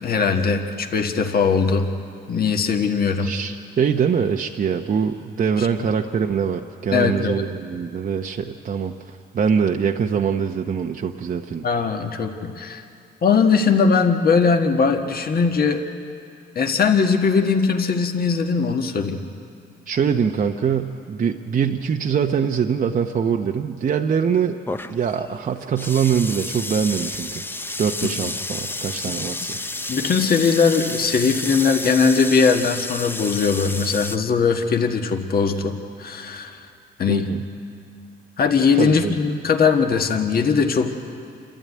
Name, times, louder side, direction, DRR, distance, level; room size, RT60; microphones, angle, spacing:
voice 1, 0.0-1.9 2.3-3.3 5.6-5.7 6.9-7.3 11.6-12.8 13.2-15.8 16.5-19.2 29.9-36.6 37.0-37.3 38.4-40.9, left 5 dB, 50° left, 4 dB, 1.6 m, -20 dB
voice 2, 3.2-11.6 19.9-24.6 24.9-27.4 27.8-29.6 37.1-37.4 38.8-39.2, right 7 dB, 45° right, 4 dB, 0.9 m, -23 dB
sound 1, 24.7-34.2, left 2 dB, 10° left, 0.6 m, -31 dB
28.0 x 12.5 x 9.5 m, 2.4 s
cardioid pair, 90°, 20 cm